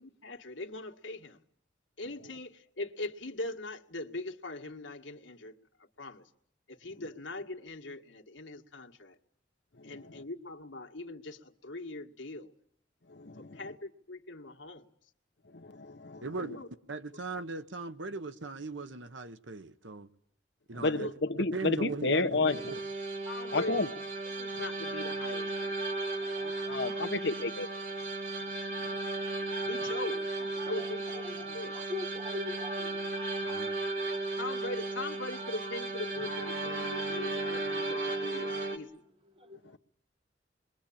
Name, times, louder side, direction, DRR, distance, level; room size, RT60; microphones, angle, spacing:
voice 1, 0.0-1.4 2.0-5.5 6.0-6.2 6.7-9.2 9.8-12.5 13.4-14.9 16.3-16.7 21.0-21.1 23.2-23.9 24.2-25.8 29.7-30.2 30.6-31.7 34.4-39.0, left 2 dB, 85° left, 1.9 m, -41 dB
voice 2, 9.8-10.2 13.1-13.6 15.5-16.2 20.8-22.6 23.5-23.9 26.7-27.7 28.8-29.0, left 3 dB, 65° left, 1.2 m, -31 dB
voice 3, 16.2-16.6 16.9-20.1 20.7-21.1 21.4-22.8 33.4-33.8, right 3 dB, 85° right, 1.2 m, -39 dB
sound 1, 22.4-38.8, right 2 dB, 70° right, 2.9 m, -35 dB
voice 4, 26.2-27.1 29.5-33.8 35.4-35.8 36.3-37.1 39.3-39.8, left 1 dB, 30° right, 1.5 m, -46 dB
28.0 x 23.0 x 8.7 m
head